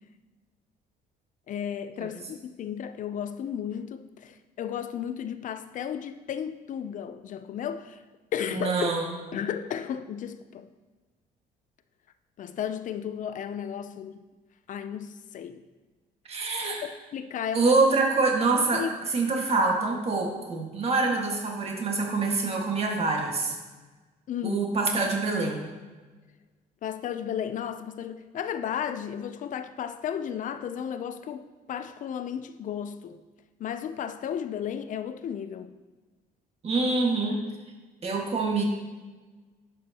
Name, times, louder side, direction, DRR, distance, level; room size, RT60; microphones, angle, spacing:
voice 1, 1.5-8.0 8.3-8.9 9.3-10.7 12.4-14.2 14.7-15.6 17.1-17.8 18.7-18.9 24.3-24.6 26.8-33.2 33.6-35.7, left 9 dB, 50° left, 0.6 m, -34 dB
voice 2, 8.5-9.1 16.3-16.8 17.5-23.5 24.4-25.6 36.6-37.4 38.0-38.6, right 3 dB, 35° right, 1.8 m, -25 dB
11.0 x 7.3 x 2.9 m
cardioid pair, 110°, 17 cm